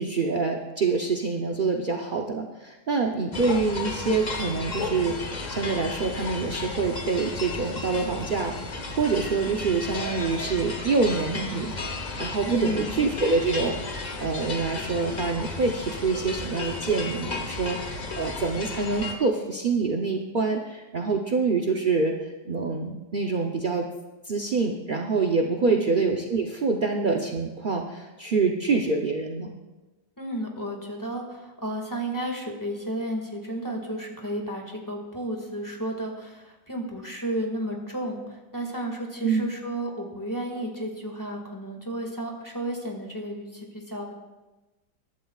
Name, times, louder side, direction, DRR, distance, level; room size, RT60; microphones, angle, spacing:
voice 1, 0.0-5.2 5.5-8.5 8.9-11.7 12.2-13.8 14.2-23.9 24.2-29.5 39.2-39.5, right 4 dB, 60° right, 1 dB, 0.5 m, -26 dB
sound 1, 3.3-19.1, left 3 dB, 30° left, 0.9 m, -34 dB
voice 2, 12.5-13.0 25.6-25.9 30.2-44.1, right 1 dB, 10° left, 0 dB, 1.7 m, -32 dB
21.5 x 11.5 x 2.4 m, 1.1 s
omnidirectional pair, 1.9 m